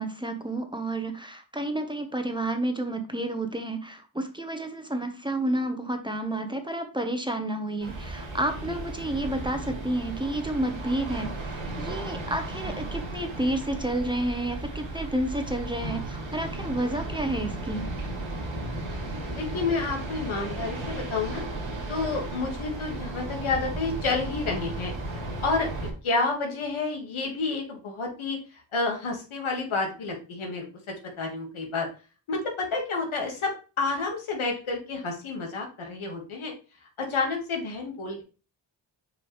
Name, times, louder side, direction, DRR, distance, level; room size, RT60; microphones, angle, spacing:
voice 1, 0.0-17.9, right 1 dB, 10° right, 6 dB, 1.2 m, -30 dB
sound 1, 7.8-25.9, right 2 dB, 80° right, 2.9 m, -35 dB
voice 2, 19.3-21.4 21.9-24.9 25.4-25.7 26.0-28.4 28.7-31.9 32.3-36.5 37.0-38.2, left 3 dB, 90° left, 1 dB, 2.1 m, -30 dB
7.0 x 4.9 x 3.3 m, 0.34 s
cardioid pair, 60°, 48 cm